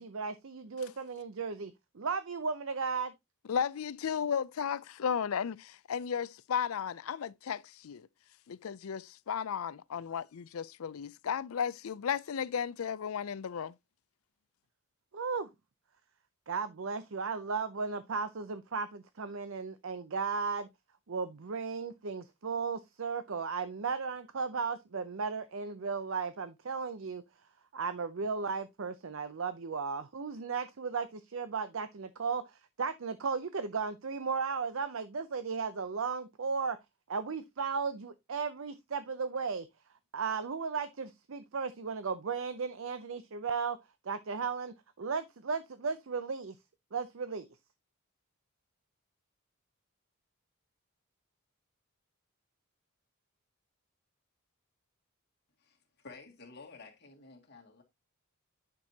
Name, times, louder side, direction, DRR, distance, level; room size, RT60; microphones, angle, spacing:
voice 1, 0.0-3.1 15.1-15.5 16.5-20.7 21.1-27.2 27.7-32.4 32.8-36.8 37.1-39.7 40.1-43.8 44.1-46.6 46.9-47.5, right 5 dB, 60° right, 0.6 m, -35 dB
voice 2, 3.5-8.1 8.5-13.7, left 7 dB, 75° left, 0.4 m, -34 dB
voice 3, 55.6-57.8, left 4 dB, 50° left, 2.2 m, -52 dB
10.0 x 6.1 x 2.8 m
head